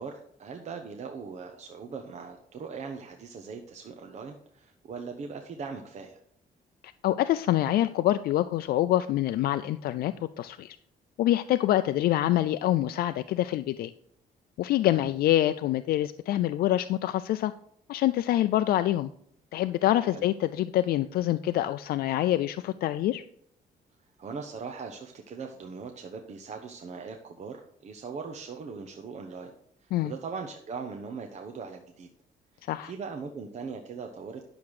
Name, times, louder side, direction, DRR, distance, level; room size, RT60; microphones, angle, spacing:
voice 1, 0.0-6.2 14.9-15.1 20.1-20.2 24.2-29.5 29.8-32.1 32.8-34.4, right 5 dB, 45° right, 4 dB, 1.0 m, -40 dB
voice 2, 7.0-10.8 11.2-13.9 14.6-17.5 17.9-19.1 19.5-23.2 29.9-30.1 32.7-32.9, left 13 dB, 75° left, 11 dB, 0.4 m, -26 dB
10.5 x 7.1 x 4.8 m, 0.68 s
cardioid pair, 145°, 16 cm